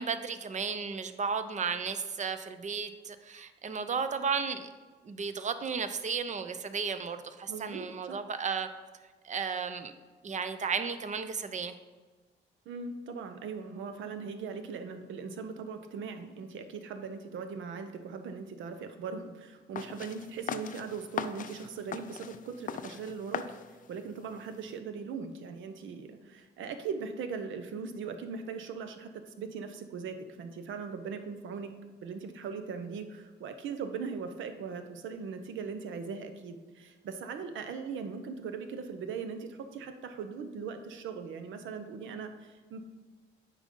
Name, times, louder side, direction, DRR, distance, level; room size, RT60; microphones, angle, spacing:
voice 1, 0.0-4.7 5.0-8.7 9.2-9.9 10.2-11.8, right 5 dB, 35° right, 10 dB, 0.6 m, -34 dB
voice 2, 7.5-8.2 12.7-23.5 23.9-31.7 32.0-42.8, right 5 dB, 75° right, 8 dB, 0.8 m, -40 dB
sound 1, 19.8-24.8, left 7 dB, 40° left, 0.4 m, -40 dB
9.0 x 5.1 x 3.8 m, 1.4 s
cardioid pair, 90°, 20 cm